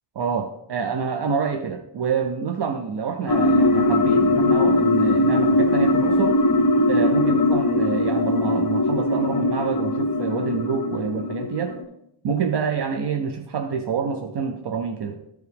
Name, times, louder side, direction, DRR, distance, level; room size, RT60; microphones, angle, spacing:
voice 1, 0.1-6.4 6.9-11.8 12.2-15.2, right 6 dB, 55° right, 6 dB, 0.7 m, -27 dB
sound 1, 3.3-11.8, left 1 dB, 40° left, 1.0 m, -20 dB
13.0 x 4.8 x 3.5 m, 0.80 s
wide cardioid pair, 115°, 48 cm